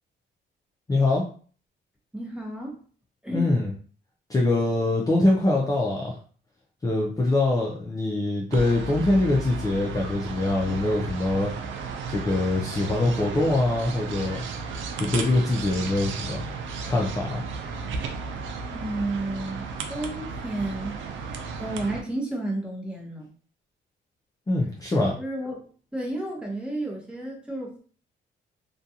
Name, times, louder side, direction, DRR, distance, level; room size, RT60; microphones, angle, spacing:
voice 1, 0.9-1.2 3.3-3.7 4.3-6.2 6.8-11.5 12.1-14.4 15.0-16.4 16.8-17.4 24.5-25.2, left 2 dB, 20° left, -2 dB, 0.5 m, -23 dB
voice 2, 2.1-2.8 3.2-3.5 18.7-21.2 21.6-23.3 25.2-25.6 25.9-27.8, right 1 dB, 5° right, -1 dB, 0.8 m, -32 dB
sound 1, 8.5-22.0, right 4 dB, 75° right, 0.5 m, -34 dB
2.5 x 2.2 x 2.7 m, 0.43 s
cardioid pair, 90°, 20 cm